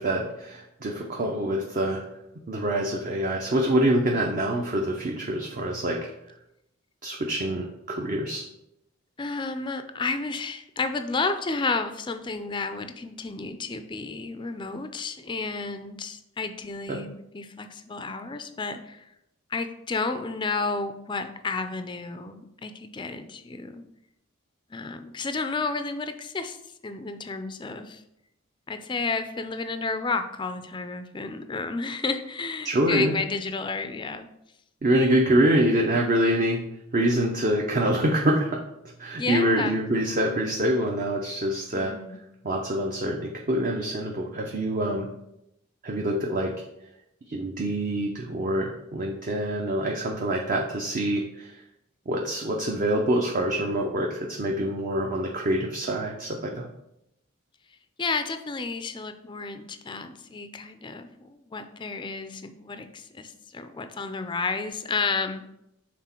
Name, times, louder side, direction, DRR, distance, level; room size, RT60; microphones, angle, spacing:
voice 1, 0.0-2.0 2.5-6.1 7.0-8.4 16.9-17.0 32.6-33.1 34.8-36.6 36.9-38.6 39.0-41.9 42.4-45.1 45.8-46.5 47.3-51.6 52.1-56.7, right 1 dB, 40° right, 0 dB, 0.6 m, -25 dB
voice 2, 9.2-19.1 19.5-23.8 24.7-26.6 26.8-28.0 28.7-34.3 39.1-39.8 41.7-42.3 58.0-65.5, left 4 dB, 20° left, 9 dB, 0.4 m, -31 dB
6.1 x 3.6 x 4.4 m, 0.83 s
head